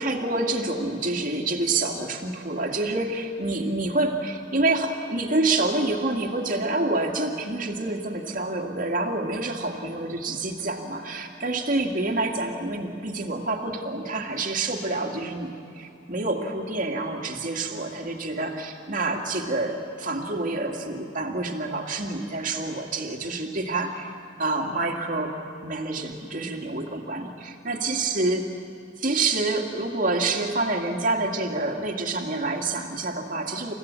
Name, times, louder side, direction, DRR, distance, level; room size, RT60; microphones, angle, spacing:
voice 1, 0.0-24.1 24.4-25.3 25.6-28.5 29.0-33.7, right 2 dB, 45° right, 2 dB, 2.1 m, -27 dB
28.5 x 15.5 x 8.4 m, 2.7 s
head